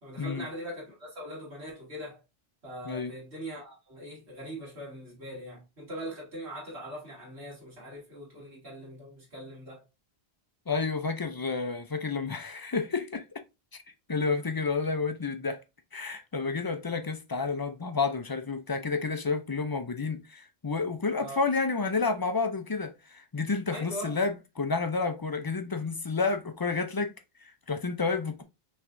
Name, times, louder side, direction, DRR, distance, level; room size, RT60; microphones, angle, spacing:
voice 1, 0.0-2.2 2.6-9.8 21.2-21.4 23.7-24.2, equal, 85° right, 2.5 m, -41 dB
voice 2, 10.7-13.2 14.1-15.6 15.9-27.1 27.4-28.4, left 4 dB, 35° left, 0.4 m, -30 dB
5.8 x 3.2 x 2.5 m
omnidirectional pair, 1.1 m